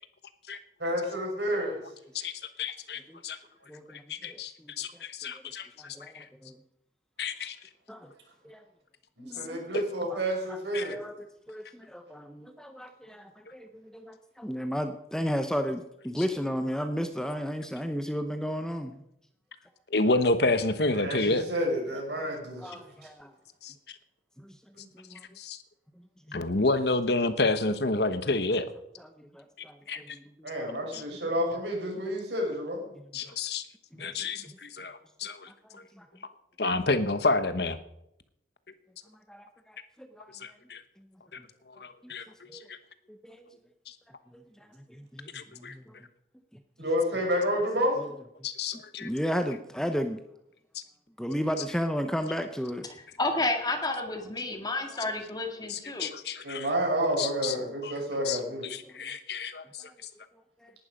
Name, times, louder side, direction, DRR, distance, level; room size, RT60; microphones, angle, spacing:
voice 1, 0.8-1.8 9.2-11.0 21.0-22.8 24.8-24.9 30.4-32.9 46.8-48.0 56.4-58.7, equal, 70° right, 1 dB, 5.8 m, -30 dB
voice 2, 2.6-3.4 4.1-6.3 7.2-7.6 9.7-9.8 10.7-11.0 16.2-16.3 19.9-21.4 23.6-23.7 25.4-25.6 26.3-28.7 29.9-30.0 30.9-31.0 33.1-33.6 34.0-35.5 36.6-37.8 40.4-40.8 41.8-42.8 45.3-45.7 48.4-49.1 55.7-56.7 57.2-57.5 57.8-57.9 58.2-59.9, left 3 dB, 60° left, 11 dB, 1.2 m, -29 dB
voice 3, 4.2-4.7 5.2-5.3 5.8-6.5 7.9-8.1 8.4-8.6 9.2-9.6 10.1-10.2 10.5-10.6 10.9-11.1 11.5-19.0 22.6-23.3 24.4-24.5 25.1-25.2 26.3-26.4 29.0-30.2 30.6-30.7 33.2-33.3 34.0-34.1 35.6-36.0 39.3-40.3 42.5-42.7 43.2-43.5 44.3-44.4 44.9-45.9 49.0-50.2 51.2-52.9 58.9-59.0 60.6-60.7, equal, 5° left, 7 dB, 0.8 m, -34 dB
voice 4, 53.2-56.1, left 2 dB, 20° left, 5 dB, 2.0 m, -30 dB
18.5 x 11.5 x 5.2 m, 0.78 s
head